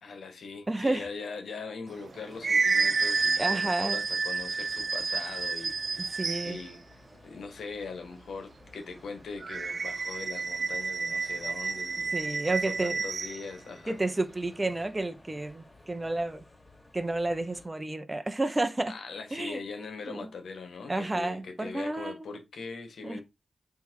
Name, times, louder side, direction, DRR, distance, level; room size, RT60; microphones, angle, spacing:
voice 1, 0.0-6.8 7.2-14.0 18.9-23.2, left 4 dB, 80° left, 1.8 m, -41 dB
voice 2, 0.7-1.1 3.4-4.0 6.1-6.6 12.1-13.0 13.9-16.4 16.9-18.9 19.3-19.6 20.1-20.3 20.9-22.4 23.0-23.2, right 2 dB, 25° right, 1.0 m, -31 dB
sound 1, 1.9-6.7 9.4-13.4, right 4 dB, 55° right, 0.5 m, -30 dB
sound 2, 3.0-17.7, left 2 dB, 20° left, 2.4 m, -56 dB
7.7 x 3.5 x 4.8 m
cardioid pair, 65°, 0 cm